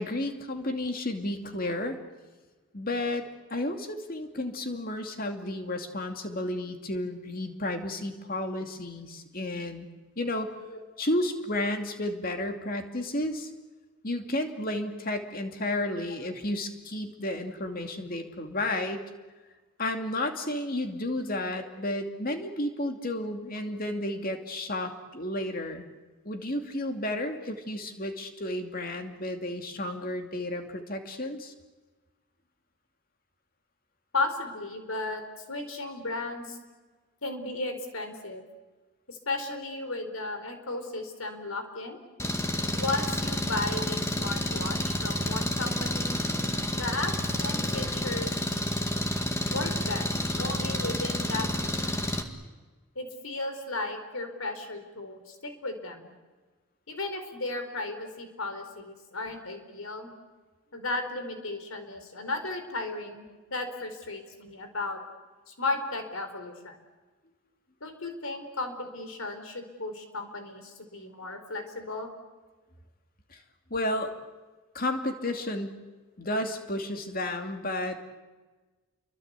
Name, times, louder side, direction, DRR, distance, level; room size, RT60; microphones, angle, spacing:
voice 1, 0.0-2.0 2.7-9.9 10.2-10.5 11.0-13.5 14.0-19.0 19.8-25.9 26.2-31.5 73.3-73.4 73.7-74.1 74.7-75.8 76.2-78.0, left 1 dB, 40° left, 5 dB, 2.6 m, -32 dB
voice 2, 34.1-35.2 35.5-36.6 37.2-38.4 39.1-42.0 42.8-46.2 46.7-47.1 47.4-48.6 49.5-52.0 52.9-56.1 56.9-60.1 60.7-63.2 63.5-65.0 65.5-66.8 67.8-72.1, left 2 dB, 75° left, 7 dB, 4.6 m, -35 dB
Engine, 42.2-52.2, left 1 dB, 15° left, 1.9 m, -30 dB
29.0 x 24.0 x 8.3 m, 1.3 s
head